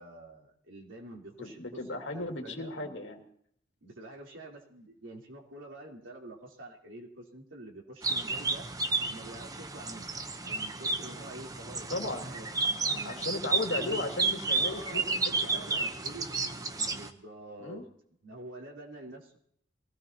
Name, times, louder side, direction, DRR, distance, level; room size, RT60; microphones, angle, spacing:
voice 1, 0.0-2.9 3.8-8.7 9.1-10.1 10.4-13.4 13.7-14.1 14.6-17.8 18.2-19.4, right 2 dB, 90° right, -1 dB, 3.6 m, -47 dB
voice 2, 1.4-3.3 11.9-12.3 12.6-15.8 17.6-17.8, left 2 dB, 75° left, 2 dB, 2.4 m, -36 dB
sound 1, 8.0-17.1, right 3 dB, 20° right, 0.9 m, -32 dB
23.0 x 17.0 x 2.9 m, 0.66 s
head